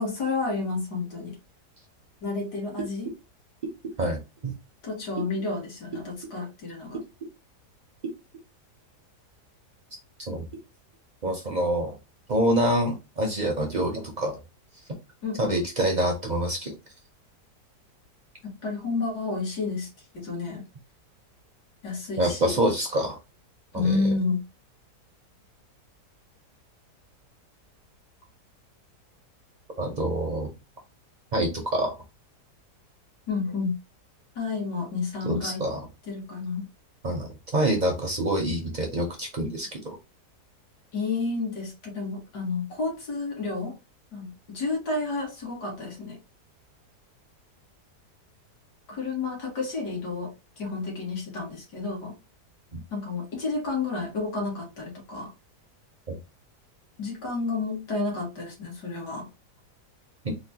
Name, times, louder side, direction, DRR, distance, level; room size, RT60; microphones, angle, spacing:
voice 1, 0.0-1.4 2.2-3.1 4.8-7.0 15.2-15.6 18.4-20.6 21.8-22.6 23.7-24.4 33.3-33.8 34.4-35.7 36.1-36.6 40.9-43.7 44.1-46.2 48.9-52.2 52.9-55.3 57.0-59.3, left 3 dB, 75° left, 2.0 m, -30 dB
voice 2, 4.0-4.5 10.3-10.5 11.2-12.0 12.3-14.4 15.4-16.7 22.2-23.2 23.7-23.8 29.8-30.5 31.3-31.9 35.2-35.8 37.0-39.9 56.1-56.2, right 1 dB, 50° right, 0.5 m, -26 dB
4.2 x 2.2 x 2.8 m
omnidirectional pair, 1.8 m